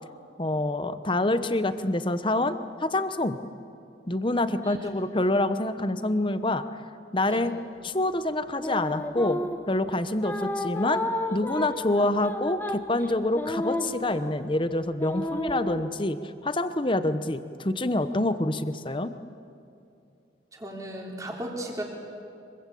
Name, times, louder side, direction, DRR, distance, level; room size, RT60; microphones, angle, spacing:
voice 1, 0.4-3.4 4.1-6.6 7.1-7.6 7.8-9.4 9.7-11.0 11.3-19.1, left 1 dB, 25° left, 11 dB, 0.9 m, -26 dB
sound 1, 8.6-9.7 10.2-14.5 15.0-15.8, left 1 dB, 10° left, 1.3 m, -32 dB
voice 2, 20.5-21.8, right 1 dB, 20° right, -1 dB, 3.6 m, -36 dB
25.0 x 23.0 x 8.5 m, 2.5 s
head